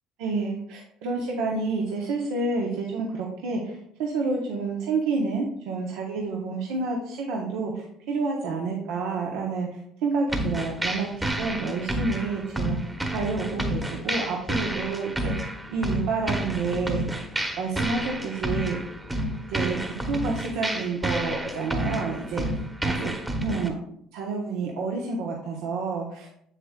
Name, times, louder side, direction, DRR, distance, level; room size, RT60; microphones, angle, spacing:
voice 1, 0.2-17.3 17.6-18.8 19.5-23.1 23.4-23.8 24.1-26.3, right 4 dB, 80° right, -1 dB, 1.0 m, -29 dB
sound 1, 10.3-23.7, right 1 dB, 15° right, 1.1 m, -30 dB
7.5 x 6.7 x 2.4 m, 0.71 s
supercardioid pair, 80°, 0 cm